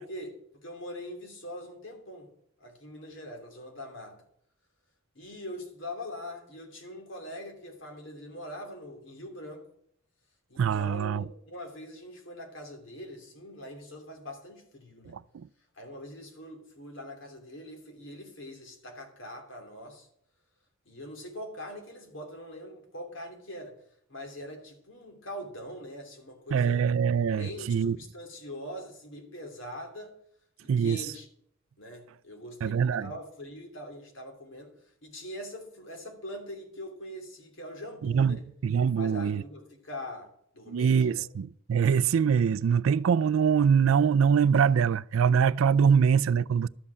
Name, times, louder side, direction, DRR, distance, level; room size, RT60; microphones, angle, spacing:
voice 1, 0.0-2.3 2.6-4.2 5.1-9.6 10.5-15.2 15.7-20.1 20.8-23.7 24.1-26.8 27.3-30.1 30.6-31.3 31.8-38.4 39.0-41.2, left 1 dB, 60° left, 3.0 m, -43 dB
voice 2, 10.6-11.2 15.1-15.5 26.5-28.0 30.7-31.0 32.6-33.1 38.0-39.4 40.7-46.7, right 7 dB, 75° right, 0.4 m, -24 dB
12.5 x 7.6 x 6.9 m
head